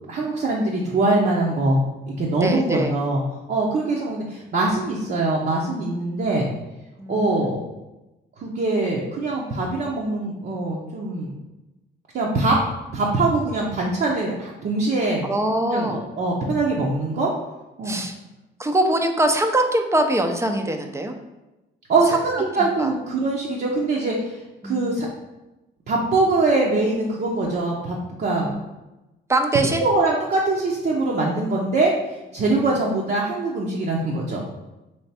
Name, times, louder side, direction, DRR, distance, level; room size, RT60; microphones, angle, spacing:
voice 1, 0.1-1.8 2.1-3.2 3.5-6.5 7.1-7.6 8.4-11.3 12.1-12.6 12.9-15.2 15.7-17.3 17.8-18.0 21.9-25.1 25.9-28.5 29.7-31.9 32.3-34.6, right 2 dB, 50° right, -4 dB, 0.8 m, -23 dB
voice 2, 2.4-2.9 7.0-7.5 15.2-16.0 17.8-18.2 18.6-21.1 22.3-22.4 22.8-22.9 24.6-25.0 28.4-28.6 29.3-29.8 32.5-32.7, right 1 dB, 15° right, 5 dB, 0.5 m, -23 dB
3.4 x 3.1 x 4.2 m, 1.0 s
cardioid pair, 90°, 20 cm